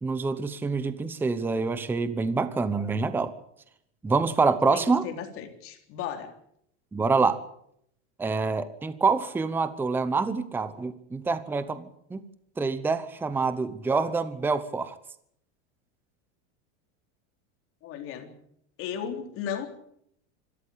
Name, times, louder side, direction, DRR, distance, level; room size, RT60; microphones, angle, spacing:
voice 1, 0.0-3.3 4.0-5.0 6.9-7.4 8.2-12.2 12.6-15.0, right 4 dB, 5° right, 13 dB, 0.8 m, -26 dB
voice 2, 4.4-6.3 17.8-18.3 18.8-19.7, left 8 dB, 40° left, 5 dB, 3.8 m, -35 dB
26.0 x 13.5 x 8.7 m, 0.71 s
supercardioid pair, 165°, 35 cm